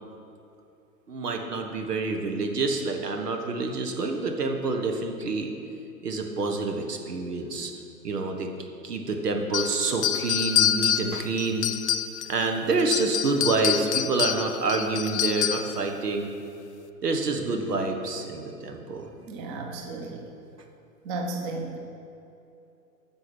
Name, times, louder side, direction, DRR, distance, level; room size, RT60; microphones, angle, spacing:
voice 1, 1.1-5.5 6.0-7.7 8.0-8.5 8.8-11.6 12.3-16.3 17.0-19.1, right 3 dB, 70° right, 4 dB, 1.5 m, -27 dB
sound 1, 9.5-12.4 12.8-15.8, left 10 dB, 45° left, 0.5 m, -27 dB
voice 2, 19.3-20.3 21.0-21.8, right 3 dB, 25° right, 2 dB, 1.1 m, -34 dB
9.6 x 7.2 x 6.3 m, 2.7 s
figure-of-eight pair, 115°, 49 cm